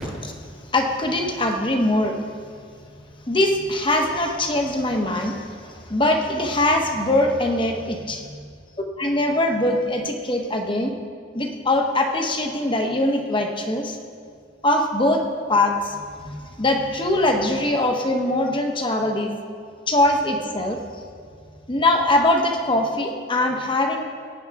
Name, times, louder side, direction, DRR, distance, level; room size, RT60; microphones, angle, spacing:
voice 1, 0.0-0.4 0.7-2.2 3.3-8.4 9.0-10.9 11.3-14.0 14.6-15.2 15.5-19.3 19.9-20.8 21.7-24.0, left 1 dB, 25° left, 3 dB, 1.0 m, -22 dB
18.5 x 10.0 x 3.6 m, 2.1 s
head